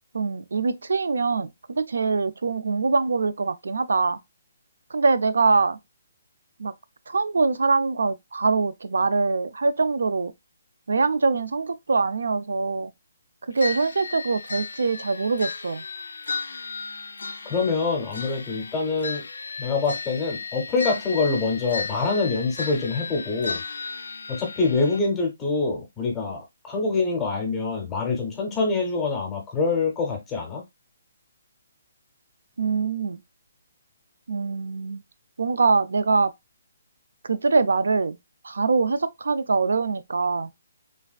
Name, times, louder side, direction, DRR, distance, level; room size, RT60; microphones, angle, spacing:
voice 1, 0.1-4.2 4.9-5.8 6.6-6.7 7.1-10.3 10.9-12.9 13.5-15.8 32.6-33.2 34.3-35.0 35.4-36.3 37.2-38.2 38.4-40.5, right 4 dB, 90° right, 0.4 m, -23 dB
sound 1, 13.6-25.0, left 4 dB, 80° left, 0.3 m, -35 dB
voice 2, 17.4-19.2 19.6-23.6 24.3-30.6, left 4 dB, 10° left, 0.6 m, -25 dB
3.3 x 2.3 x 2.3 m
hypercardioid pair, 175°, 0 cm